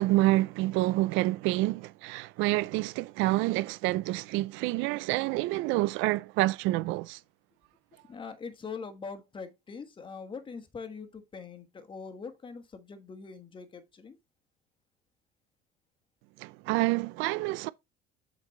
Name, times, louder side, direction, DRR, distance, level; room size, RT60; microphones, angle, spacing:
voice 1, 0.0-7.2 16.4-17.7, right 18 dB, 75° right, 0.4 m, -28 dB
voice 2, 8.1-14.2, left 5 dB, 25° left, 1.3 m, -42 dB
7.3 x 5.2 x 3.2 m
cardioid pair, 120°, 20 cm